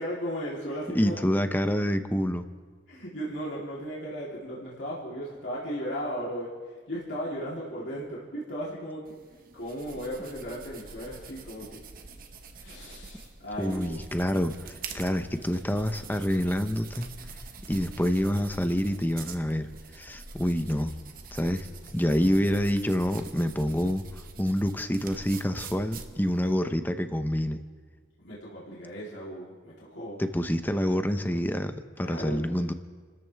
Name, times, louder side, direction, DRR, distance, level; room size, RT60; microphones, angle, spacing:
voice 1, 0.0-1.2 2.9-9.1 9.5-11.8 12.6-14.0 28.2-30.2 32.0-32.5, equal, 70° left, -7 dB, 3.4 m, -36 dB
voice 2, 0.9-2.4 13.6-17.1 17.7-19.7 19.9-20.9 21.3-21.7 21.9-24.0 24.4-27.6 30.2-32.7, equal, 10° left, 9 dB, 0.8 m, -27 dB
sound 1, 9.1-26.5, right 4 dB, 50° right, 1.2 m, -45 dB
30.0 x 14.0 x 3.5 m, 1.5 s
head